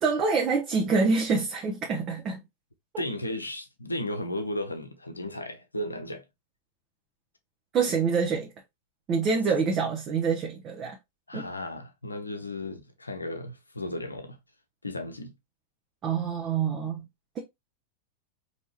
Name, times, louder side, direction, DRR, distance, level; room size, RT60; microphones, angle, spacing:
voice 1, 0.0-2.4 7.7-8.5 9.1-11.0 11.3-11.5 16.0-17.0, right 5 dB, 30° right, 0.9 m, -26 dB
voice 2, 3.0-6.2 11.3-14.4 14.8-15.3, left 1 dB, 80° left, 0.7 m, -34 dB
4.6 x 2.9 x 2.9 m
figure-of-eight pair, 90°, 0 cm